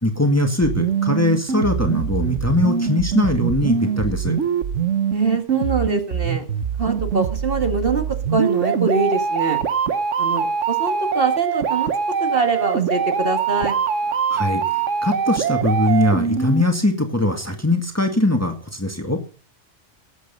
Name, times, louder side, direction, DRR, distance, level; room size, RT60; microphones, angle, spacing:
voice 1, 0.0-4.4 14.3-19.2, left 1 dB, 10° left, 5 dB, 1.7 m, -21 dB
sound 1, 0.6-16.6, right 7 dB, 75° right, 1.4 m, -23 dB
voice 2, 5.1-6.4 6.8-8.0 8.3-9.6 10.2-11.9 12.2-13.8, right 3 dB, 45° right, 5 dB, 2.1 m, -23 dB
18.5 x 8.1 x 5.4 m, 0.38 s
omnidirectional pair, 1.3 m